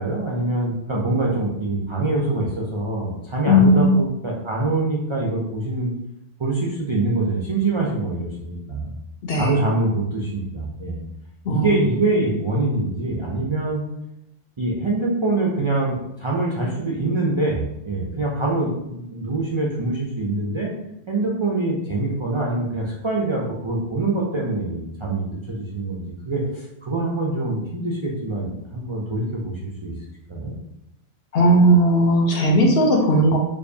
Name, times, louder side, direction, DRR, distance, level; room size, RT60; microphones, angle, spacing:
voice 1, 0.0-5.9 6.4-8.9 9.3-11.0 11.5-13.8 14.6-20.7 21.1-29.9 30.3-30.5, right 2 dB, 50° right, -3 dB, 0.3 m, -24 dB
voice 2, 3.4-3.9 9.2-9.6 11.4-11.7 31.3-33.4, equal, 60° left, 1 dB, 0.8 m, -16 dB
4.7 x 2.3 x 2.6 m, 0.83 s
omnidirectional pair, 1.2 m